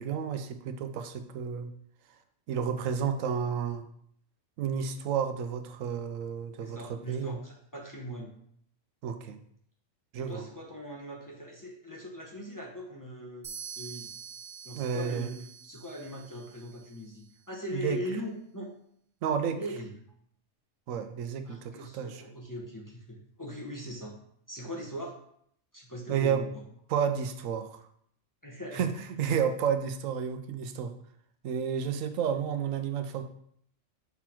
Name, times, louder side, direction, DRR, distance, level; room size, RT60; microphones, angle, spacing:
voice 1, 0.0-1.7 2.5-3.8 4.6-7.4 9.0-9.4 10.1-10.4 14.8-15.3 17.7-18.0 19.2-19.6 20.9-22.2 26.1-26.4 26.9-27.8 28.7-30.9 31.4-33.2, right 7 dB, 80° right, 9 dB, 1.0 m, -31 dB
voice 2, 6.6-8.3 10.2-13.5 13.7-14.1 14.6-18.7 19.5-19.9 21.4-24.1 24.5-25.1 25.7-26.6 28.4-28.8, equal, 15° left, -2 dB, 0.9 m, -40 dB
sound 1, 13.4-17.2, right 7 dB, 40° right, 1.0 m, -46 dB
5.8 x 4.0 x 4.4 m, 0.67 s
omnidirectional pair, 1.3 m